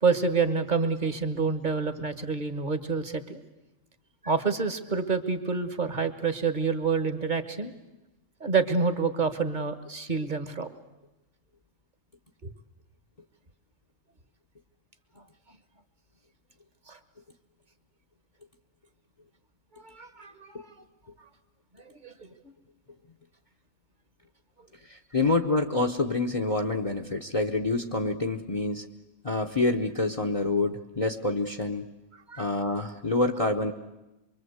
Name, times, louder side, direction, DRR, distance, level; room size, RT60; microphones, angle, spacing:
voice 1, 0.0-3.4 4.2-7.7 8.4-10.7 12.4-12.5 16.9-17.0 19.7-20.7 22.0-22.1 32.1-32.5, right 5 dB, 40° right, 10 dB, 1.6 m, -28 dB
voice 2, 24.9-28.9 29.2-31.9 32.4-33.7, left 3 dB, 30° left, 6 dB, 1.0 m, -27 dB
24.5 x 24.0 x 8.1 m, 0.99 s
omnidirectional pair, 1.3 m